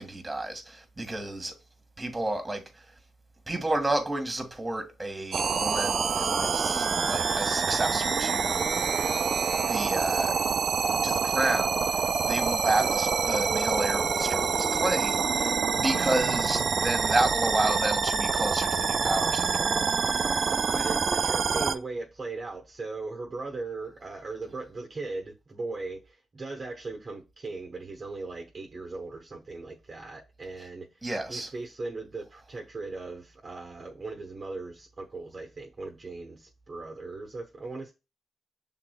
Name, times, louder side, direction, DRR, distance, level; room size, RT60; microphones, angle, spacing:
voice 1, 0.0-1.5 2.0-2.8 3.5-8.8 9.6-10.4 10.8-19.7 31.0-31.5, right 2 dB, 20° right, 1.6 m, -31 dB
sound 1, 5.3-21.7, right 5 dB, 60° right, 0.5 m, -26 dB
voice 2, 20.7-37.9, right 3 dB, 40° right, 1.0 m, -38 dB
6.0 x 3.8 x 2.2 m
cardioid pair, 70°, 0 cm